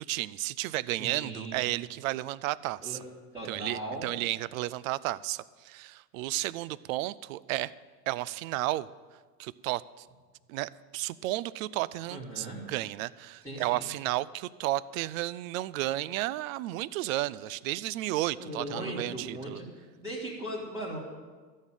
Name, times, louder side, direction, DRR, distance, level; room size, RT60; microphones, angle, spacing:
voice 1, 0.0-3.0 3.4-7.7 8.1-8.9 9.4-10.0 10.5-19.6, right 16 dB, 55° right, 20 dB, 0.6 m, -33 dB
voice 2, 1.0-1.7 2.8-3.0 3.3-4.1 12.1-12.7 13.4-13.9 18.3-19.7 20.0-21.2, right 1 dB, 5° right, -8 dB, 2.9 m, -38 dB
13.5 x 6.5 x 9.2 m, 1.4 s
hypercardioid pair, 95°, 48 cm